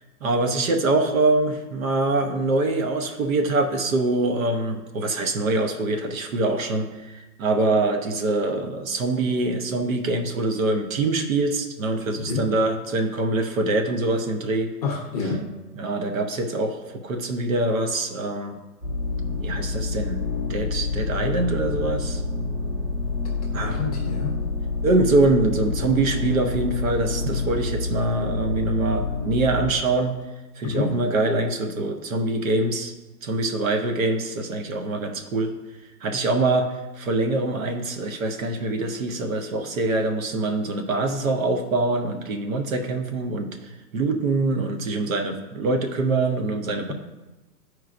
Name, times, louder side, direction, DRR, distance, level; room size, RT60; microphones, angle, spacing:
voice 1, 0.2-14.7 15.7-18.6 19.4-20.2 20.5-22.2 23.5-23.8 24.8-30.2 30.6-32.9 33.2-35.5 36.0-43.6 43.9-46.9, right 2 dB, 60° right, 6 dB, 0.8 m, -24 dB
voice 2, 14.8-15.4 23.6-24.4 30.6-30.9, left 4 dB, 25° left, 0 dB, 0.7 m, -27 dB
sound 1, 18.8-29.7, left 3 dB, 30° right, 1.7 m, -27 dB
10.5 x 4.6 x 2.5 m, 1.1 s
hypercardioid pair, 170°, 47 cm